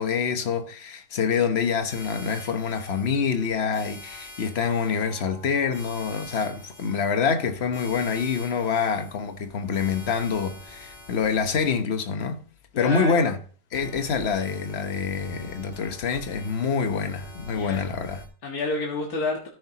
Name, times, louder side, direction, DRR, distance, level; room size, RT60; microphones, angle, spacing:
voice 1, 0.0-12.4 12.8-13.4 13.7-18.2, left 6 dB, 45° left, 1.2 m, -26 dB
sound 1, 1.9-11.7 13.7-18.3, left 2 dB, 25° left, 2.6 m, -46 dB
sound 2, 4.6-9.2, right 1 dB, 30° right, 3.8 m, -55 dB
voice 2, 12.7-13.3 17.5-17.9 18.4-19.5, left 2 dB, 70° left, 2.3 m, -29 dB
13.5 x 9.8 x 2.9 m
omnidirectional pair, 1.7 m